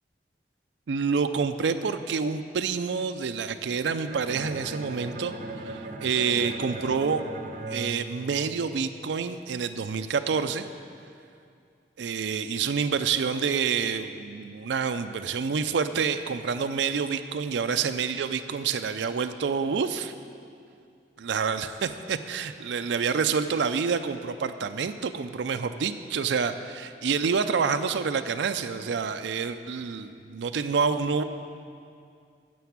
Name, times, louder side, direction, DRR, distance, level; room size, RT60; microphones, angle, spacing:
voice 1, 0.9-5.3 5.6-7.2 7.7-10.7 12.0-20.1 21.2-31.2, right 5 dB, 85° right, 9 dB, 0.4 m, -28 dB
Bowed string instrument, 4.1-9.0, right 2 dB, 45° right, 0.7 m, -38 dB
9.3 x 6.9 x 7.3 m, 2.4 s
head